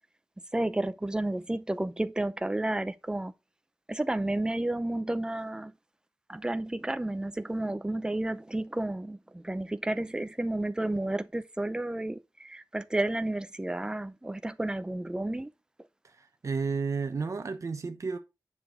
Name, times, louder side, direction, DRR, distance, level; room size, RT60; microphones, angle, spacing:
voice 1, 0.5-3.3 3.9-5.7 6.3-15.5, right 1 dB, 10° right, 0.6 m, -31 dB
voice 2, 16.0-18.2, right 4 dB, 50° right, 1.0 m, -32 dB
9.9 x 6.1 x 3.7 m
wide cardioid pair, 125°, 7 cm